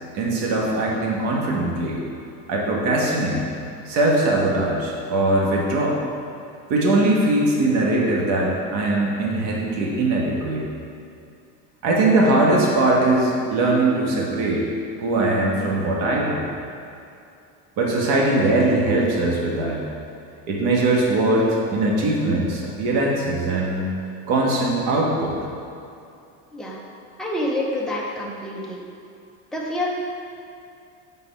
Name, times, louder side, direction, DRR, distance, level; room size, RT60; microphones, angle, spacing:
voice 1, 0.1-2.0 2.5-3.5 3.8-6.0 6.7-10.7 11.8-14.6 15.0-16.4 17.8-19.8 20.5-23.9 24.3-25.3, right 2 dB, 60° right, -2 dB, 1.3 m, -21 dB
voice 2, 27.2-28.8 29.5-29.9, left 1 dB, ahead, -4 dB, 0.6 m, -27 dB
5.9 x 3.9 x 5.3 m, 2.6 s
cardioid pair, 155°, 37 cm